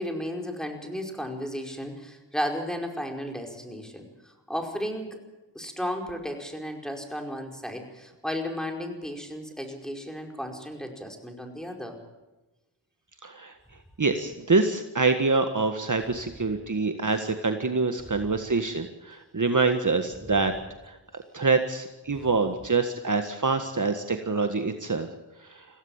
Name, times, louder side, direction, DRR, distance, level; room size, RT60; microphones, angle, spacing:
voice 1, 0.0-5.2 5.5-12.0 18.1-18.3 22.1-22.3, equal, ahead, 2 dB, 5.1 m, -34 dB
voice 2, 13.2-13.5 14.0-20.5 20.8-21.0 21.3-25.1 25.5-25.6, right 4 dB, 40° right, 6 dB, 1.7 m, -25 dB
22.5 x 16.5 x 7.3 m, 1.1 s
cardioid pair, 40°, 45 cm